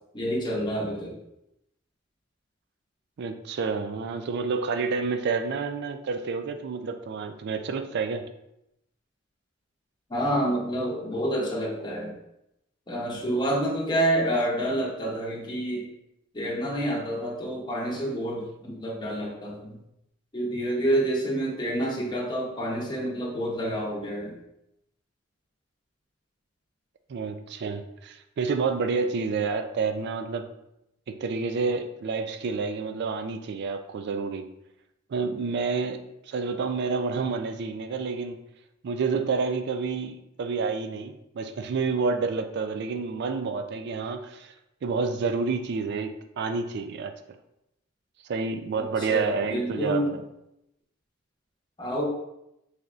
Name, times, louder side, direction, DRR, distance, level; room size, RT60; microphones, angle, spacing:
voice 1, 0.1-1.2 10.1-12.1 12.9-15.9 16.3-19.8 20.3-24.4 49.0-50.1 51.8-52.1, right 1 dB, 20° left, -4 dB, 0.7 m, -28 dB
voice 2, 3.2-8.2 27.1-30.5 31.1-34.5 35.1-38.4 38.8-44.5 44.8-47.1 48.3-50.0, right 4 dB, 55° right, 8 dB, 0.3 m, -29 dB
3.9 x 3.3 x 2.4 m, 0.84 s
head